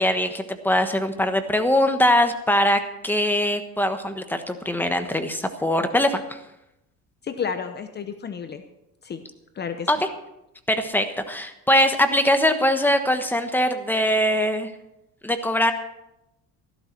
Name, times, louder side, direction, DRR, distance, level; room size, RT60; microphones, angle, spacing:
voice 1, 0.0-6.4 9.9-10.1 10.7-14.7 15.2-15.7, left 1 dB, 5° left, 7 dB, 1.2 m, -22 dB
voice 2, 7.2-8.6 9.0-9.2 9.6-9.9, left 6 dB, 30° left, 8 dB, 0.9 m, -31 dB
14.0 x 12.5 x 4.6 m, 0.86 s
cardioid pair, 120°, 32 cm